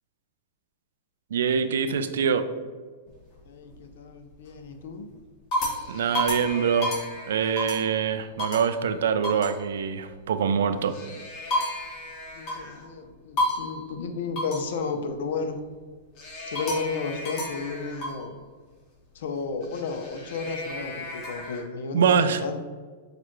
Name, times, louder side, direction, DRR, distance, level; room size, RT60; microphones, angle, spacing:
voice 1, 1.3-2.5 5.9-7.0 7.3-11.0 21.9-22.4, right 6 dB, 80° right, 10 dB, 0.3 m, -24 dB
sound 1, 3.1-3.8 4.3-4.7 5.2-8.0 8.4-8.7 9.2-9.6 10.7-12.9 13.4-13.8 14.4-14.7 16.2-18.3 19.6-21.6, left 1 dB, 40° left, 1.4 m, -32 dB
voice 2, 3.4-5.1 12.3-15.6 16.5-18.4 19.1-22.1 22.4-22.6, left 4 dB, 75° left, 7 dB, 0.5 m, -33 dB
6.5 x 2.4 x 3.0 m, 1.5 s
hypercardioid pair, 135°, 0 cm